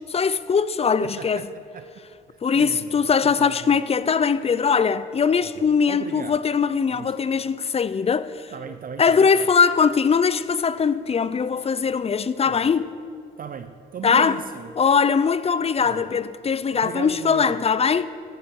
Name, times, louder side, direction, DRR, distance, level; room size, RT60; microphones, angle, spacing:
voice 1, 0.1-1.4 2.4-8.5 9.0-12.9 14.0-14.4 14.8-18.1, left 6 dB, 30° left, 0.5 m, -21 dB
voice 2, 1.0-1.9 2.3-3.9 5.3-6.4 6.9-7.1 8.5-9.5 12.4-12.8 13.4-14.7 15.8-16.1 16.7-17.6, right 7 dB, 45° right, 0.6 m, -37 dB
14.0 x 11.5 x 4.7 m
cardioid pair, 90°, 20 cm